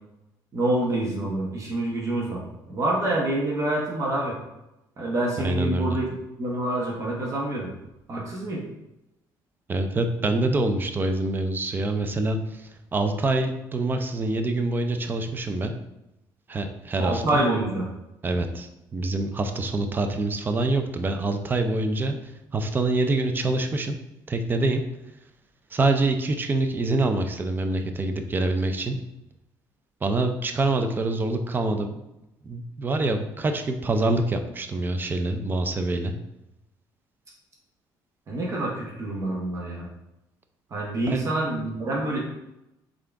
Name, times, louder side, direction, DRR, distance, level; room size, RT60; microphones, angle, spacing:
voice 1, 0.5-2.4 2.7-4.4 5.0-6.1 6.4-7.7 8.1-8.6 17.0-17.8 38.3-39.9 40.7-42.2, right 1 dB, 40° right, -3 dB, 0.9 m, -26 dB
voice 2, 5.4-6.0 9.7-15.7 16.5-17.4 18.2-22.2 22.5-24.0 24.3-24.8 25.7-29.0 30.0-32.0 32.4-36.1 41.1-41.2, right 2 dB, 25° right, 6 dB, 0.4 m, -25 dB
3.7 x 3.7 x 3.4 m, 0.92 s
cardioid pair, 115°, 8 cm